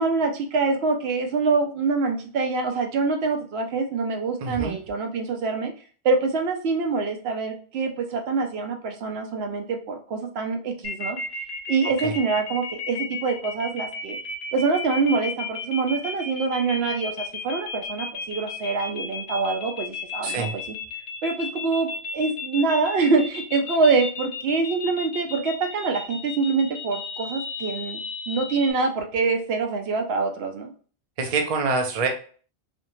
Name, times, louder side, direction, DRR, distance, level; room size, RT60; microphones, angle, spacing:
voice 1, 0.0-5.7 6.0-11.4 11.7-14.2 14.5-20.8 21.2-28.0 28.3-30.7, right 4 dB, 70° right, 4 dB, 0.8 m, -25 dB
voice 2, 4.4-4.8 12.0-12.1 20.2-20.5 31.2-32.1, right 4 dB, 50° right, 4 dB, 0.5 m, -25 dB
sound 1, 10.8-28.7, left 4 dB, 70° left, 0.8 m, -33 dB
2.5 x 2.1 x 2.9 m, 0.41 s
omnidirectional pair, 1.1 m